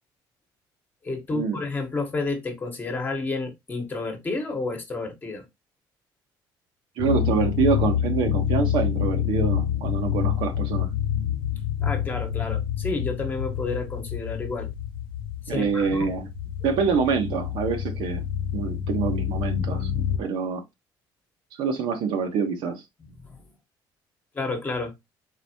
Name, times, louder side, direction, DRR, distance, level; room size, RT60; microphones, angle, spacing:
voice 1, 1.0-5.4 11.8-14.7 15.5-16.1 23.2-23.3 24.3-24.9, left 3 dB, 20° left, 1.2 m, -30 dB
sound 1, 7.0-20.2, left 10 dB, 85° left, 0.6 m, -27 dB
voice 2, 7.0-10.9 15.5-16.3 16.6-18.2 18.5-19.9 20.2-20.6 21.6-22.8, right 5 dB, 75° right, 1.1 m, -26 dB
4.0 x 4.0 x 2.8 m
cardioid pair, 130°, 8 cm